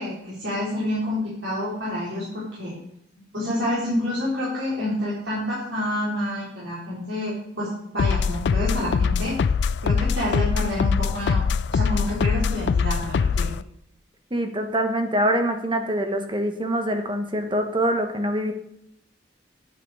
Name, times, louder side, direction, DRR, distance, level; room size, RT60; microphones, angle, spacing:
voice 1, 0.0-2.7 3.3-7.7 7.9-9.3 9.8-11.4 11.7-13.5, left 1 dB, 85° right, -8 dB, 3.9 m, -28 dB
sound 1, 8.0-13.6, left 5 dB, 65° left, 0.3 m, -23 dB
voice 2, 14.3-18.5, right 1 dB, 25° right, 6 dB, 1.2 m, -24 dB
9.3 x 9.0 x 4.9 m, 0.75 s
head